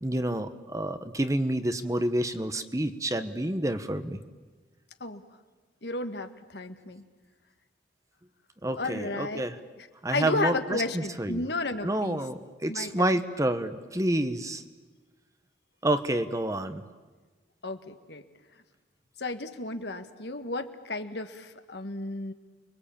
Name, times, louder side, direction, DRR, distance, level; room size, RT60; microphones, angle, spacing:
voice 1, 0.0-4.2 8.6-9.5 10.0-11.4 11.8-14.6 15.8-16.8, right 1 dB, 20° right, 10 dB, 1.1 m, -29 dB
voice 2, 5.8-7.0 8.8-9.4 9.8-12.2 12.7-13.1 17.6-18.2 19.2-22.3, left 2 dB, 65° left, 8 dB, 1.7 m, -33 dB
29.5 x 23.0 x 8.7 m, 1.3 s
head